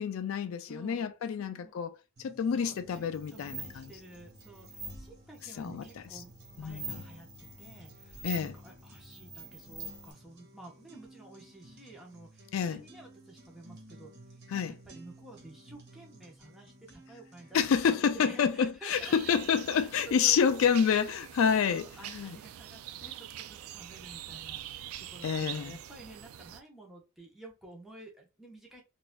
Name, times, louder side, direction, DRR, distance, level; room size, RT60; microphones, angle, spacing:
voice 1, 0.0-1.9 2.2-3.8 5.6-5.8 6.1-6.2 6.6-6.9 8.2-8.5 12.5-12.8 14.5-14.7 17.5-22.4 25.2-25.8, left 7 dB, 70° left, 0.3 m, -28 dB
voice 2, 0.6-1.1 1.6-1.7 2.5-7.3 7.6-19.4 19.7-20.6 21.4-28.8, right 2 dB, ahead, 1.0 m, -51 dB
sound 1, 2.2-18.2, right 2 dB, 50° right, 1.4 m, -56 dB
sound 2, 2.8-10.1, right 2 dB, 25° right, 1.9 m, -45 dB
sound 3, 18.9-26.6, right 11 dB, 80° right, 0.3 m, -44 dB
4.0 x 2.6 x 2.3 m
head